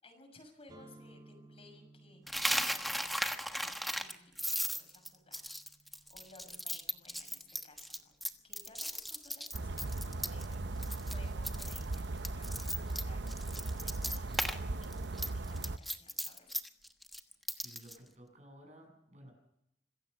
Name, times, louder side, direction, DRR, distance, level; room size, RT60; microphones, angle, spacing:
voice 1, 0.0-5.5 5.9-8.2 8.4-14.3 14.8-16.5, left 2 dB, 35° left, 3 dB, 6.5 m, -59 dB
sound 1, 0.7-8.5, right 2 dB, 25° right, 2.5 m, -61 dB
Coin (dropping), 2.3-10.5 10.8-11.2 11.4-14.6 14.8-18.0, equal, ahead, 1.3 m, -36 dB
sound 2, 9.5-15.8, right 2 dB, 85° right, 0.9 m, -38 dB
voice 2, 17.5-19.3, right 1 dB, 40° right, 2 dB, 7.6 m, -55 dB
26.0 x 15.5 x 6.7 m, 0.79 s
head